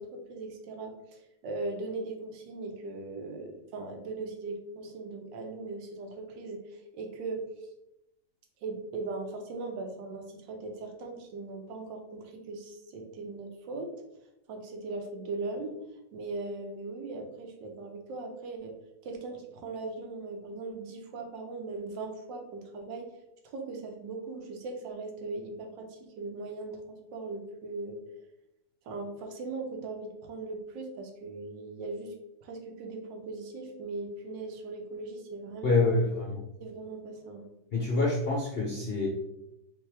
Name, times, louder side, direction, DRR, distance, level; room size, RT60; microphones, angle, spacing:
voice 1, 0.0-7.5 8.6-13.9 14.5-15.8 16.1-18.7 19.0-23.1 23.4-28.0 28.8-32.1 32.4-36.1 36.6-37.5, right 3 dB, 85° right, 4 dB, 1.5 m, -39 dB
voice 2, 35.6-36.4 37.7-39.1, left 3 dB, 60° left, -2 dB, 0.6 m, -26 dB
5.4 x 2.8 x 3.3 m, 0.87 s
omnidirectional pair, 1.9 m